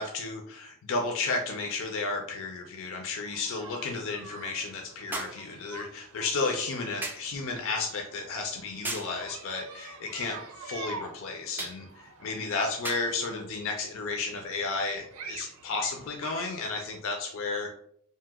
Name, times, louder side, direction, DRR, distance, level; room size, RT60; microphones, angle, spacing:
voice 1, 0.0-17.7, left 3 dB, 65° left, 2 dB, 0.4 m, -33 dB
sound 1, 3.2-17.0, right 4 dB, 80° right, 0.5 m, -47 dB
sound 2, 5.1-5.5 7.0-7.3 8.8-9.2 11.6-11.8 12.8-13.1 14.2-14.3, right 2 dB, 10° right, 0.4 m, -36 dB
2.8 x 2.0 x 3.4 m, 0.66 s
head